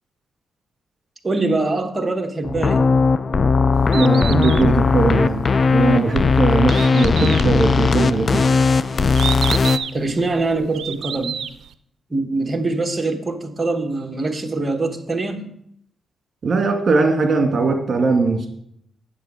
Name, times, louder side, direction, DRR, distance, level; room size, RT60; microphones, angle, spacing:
voice 1, 1.2-2.9 9.9-11.4 12.1-15.5, right 3 dB, 25° right, 5 dB, 1.2 m, -23 dB
sound 1, 2.4-9.8, left 4 dB, 40° left, 0.4 m, -17 dB
Bird, 3.7-11.7, right 8 dB, 75° right, 0.5 m, -31 dB
voice 2, 3.9-5.4 5.7-8.5 16.4-18.5, right 4 dB, 50° right, 4 dB, 1.9 m, -20 dB
8.7 x 7.0 x 4.9 m, 0.70 s
cardioid pair, 80°, 0 cm